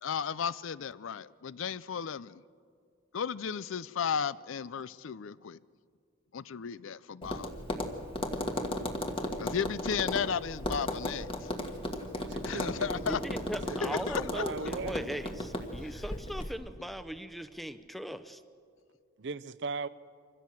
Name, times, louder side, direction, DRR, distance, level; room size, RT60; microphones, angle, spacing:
voice 1, 0.0-2.4 3.1-5.6 6.3-7.5 9.4-11.5 12.4-13.2 13.8-14.4, left 7 dB, 70° left, 0.5 m, -34 dB
Tap, 7.2-16.5, left 1 dB, 25° left, 1.6 m, -36 dB
voice 2, 12.2-12.9 13.5-14.1 14.3-15.0 19.2-19.9, right 4 dB, 55° right, 0.6 m, -38 dB
voice 3, 13.1-18.4, equal, ahead, 0.7 m, -39 dB
25.5 x 16.0 x 7.6 m
head